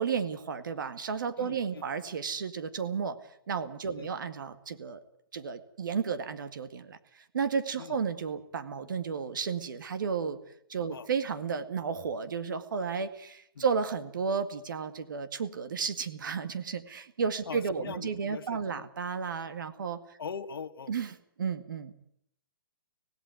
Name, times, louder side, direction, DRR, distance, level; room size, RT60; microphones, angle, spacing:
voice 1, 0.0-3.2 3.5-5.0 5.3-10.4 10.7-20.0 20.9-21.9, right 6 dB, 60° right, 11 dB, 2.0 m, -33 dB
voice 2, 1.4-1.8 3.9-4.1 7.8-8.0 10.9-11.1 13.5-13.6 17.5-18.9 20.2-20.9, left 6 dB, 80° left, 7 dB, 1.6 m, -41 dB
17.5 x 17.0 x 9.5 m, 0.70 s
hypercardioid pair, 170°, 12 cm